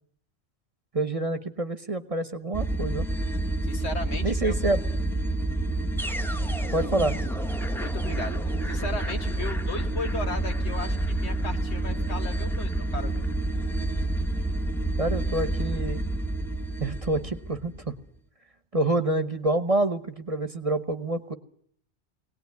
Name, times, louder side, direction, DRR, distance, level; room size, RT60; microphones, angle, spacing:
voice 1, 0.9-3.1 4.2-4.8 6.7-7.1 15.0-16.0 16.8-17.9 18.7-21.3, right 2 dB, 30° right, 10 dB, 1.2 m, -27 dB
sound 1, 2.5-17.9, right 2 dB, ahead, 1.0 m, -28 dB
voice 2, 3.6-4.5 7.7-13.3, left 3 dB, 70° left, 5 dB, 2.0 m, -36 dB
23.0 x 18.5 x 9.6 m, 0.65 s
omnidirectional pair, 1.1 m